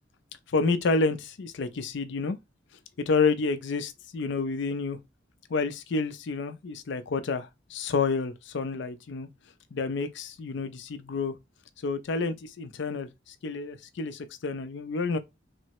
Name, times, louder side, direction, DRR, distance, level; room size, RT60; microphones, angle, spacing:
voice 1, 0.5-2.4 3.1-5.0 5.5-9.3 9.7-11.4 11.8-15.2, left 4 dB, 65° left, 0.4 m, -29 dB
3.2 x 2.0 x 2.8 m
head